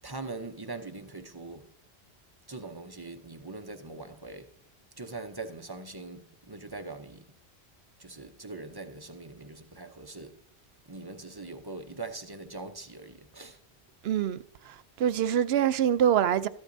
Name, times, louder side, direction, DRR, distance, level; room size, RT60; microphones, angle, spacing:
voice 1, 0.0-1.6 2.5-4.5 5.0-7.3 8.0-10.3 10.9-13.6, right 3 dB, 25° right, 0.7 m, -42 dB
voice 2, 14.0-16.5, right 9 dB, 75° right, 0.8 m, -25 dB
13.5 x 11.5 x 2.7 m
omnidirectional pair, 1.1 m